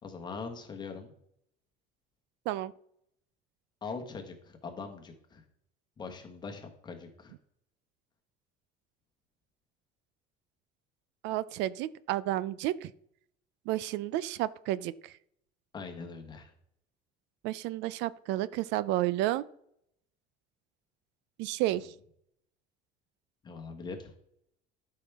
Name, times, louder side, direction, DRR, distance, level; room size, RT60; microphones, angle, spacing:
voice 1, 0.0-1.1 3.8-5.4 6.0-7.3 15.7-16.5 21.7-21.9 23.4-24.1, left 4 dB, 25° left, 4 dB, 1.4 m, -42 dB
voice 2, 11.2-12.9 13.7-15.1 17.4-19.4 21.4-21.9, right 15 dB, 75° right, 18 dB, 0.4 m, -31 dB
12.5 x 5.7 x 3.5 m, 0.71 s
cardioid pair, 170°, 19 cm